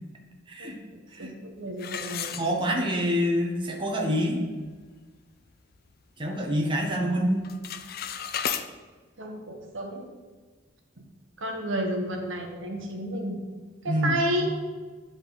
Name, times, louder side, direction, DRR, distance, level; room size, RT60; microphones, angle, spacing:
voice 1, 1.2-3.1 9.2-10.1 11.4-13.4 13.8-14.5, right 1 dB, 80° right, 2 dB, 1.2 m, -31 dB
sound 1, 1.8-3.1 3.5-3.6 4.2-4.3 4.7-5.0 5.4-6.5 6.8-7.1 7.4-8.7, left 8 dB, 50° left, 0.4 m, -34 dB
voice 2, 2.4-4.4 6.2-7.4 13.9-14.2, equal, 25° right, 0 dB, 0.9 m, -26 dB
10.5 x 3.8 x 4.0 m, 1.4 s
head